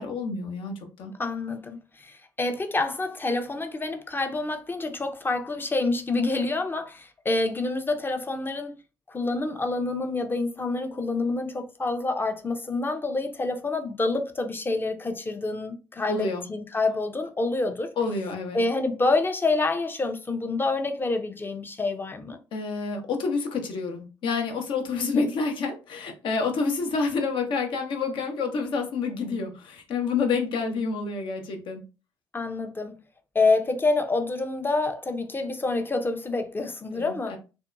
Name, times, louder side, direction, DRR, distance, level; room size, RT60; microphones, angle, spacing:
voice 1, 0.0-1.1 16.1-16.5 18.0-18.6 22.5-31.8 36.9-37.4, left 4 dB, 60° left, 0.7 m, -28 dB
voice 2, 1.2-8.8 9.1-17.9 18.5-22.4 25.0-25.3 32.3-32.9 33.3-37.4, left 3 dB, 20° left, 0.6 m, -27 dB
2.6 x 2.2 x 2.5 m
hypercardioid pair, 50°, 10 cm